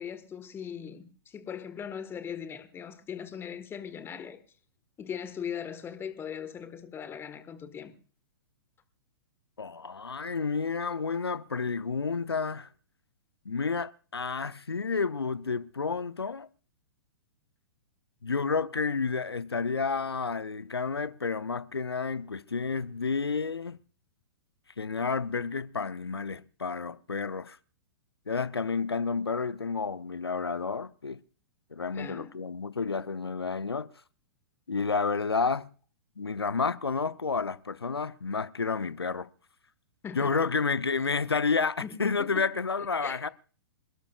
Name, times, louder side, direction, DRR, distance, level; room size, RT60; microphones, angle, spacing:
voice 1, 0.0-4.4 5.0-7.9 31.9-32.4 40.0-40.5 41.8-42.5 42.8-43.2, left 8 dB, 20° left, 1.6 m, -40 dB
voice 2, 9.6-12.7 13.4-16.5 18.2-23.8 24.8-27.6 28.3-31.2 31.7-33.9 34.7-35.7 36.2-39.3 40.1-43.3, left 4 dB, 85° left, 0.7 m, -30 dB
27.0 x 12.0 x 2.4 m
figure-of-eight pair, 110°, 13 cm